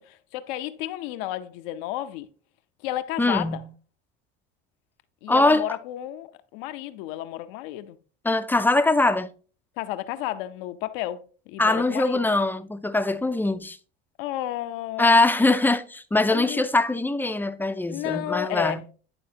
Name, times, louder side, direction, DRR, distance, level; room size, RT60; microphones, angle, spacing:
voice 1, 0.0-2.3 2.8-3.6 5.2-8.0 9.8-12.2 14.2-15.2 16.3-16.7 17.9-18.9, left 14 dB, 85° left, 0.7 m, -32 dB
voice 2, 3.2-3.7 5.3-5.6 8.2-9.3 11.6-13.8 15.0-18.8, left 2 dB, 5° left, 0.4 m, -22 dB
11.0 x 4.1 x 2.8 m
supercardioid pair, 100°, 29 cm